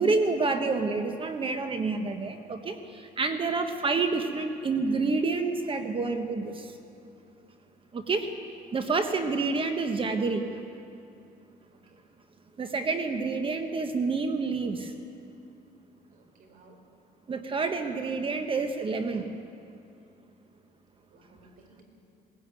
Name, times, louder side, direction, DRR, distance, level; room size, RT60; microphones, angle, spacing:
voice 1, 0.0-6.7 7.9-8.3 8.7-10.4 12.6-14.9 17.3-19.3, right 4 dB, 30° right, 7 dB, 1.3 m, -28 dB
voice 2, 7.9-8.3 11.7-12.1 16.1-16.8 21.1-21.8, right 3 dB, 55° right, 4 dB, 4.3 m, -58 dB
19.0 x 16.0 x 9.1 m, 2.7 s
cardioid pair, 110°, 17 cm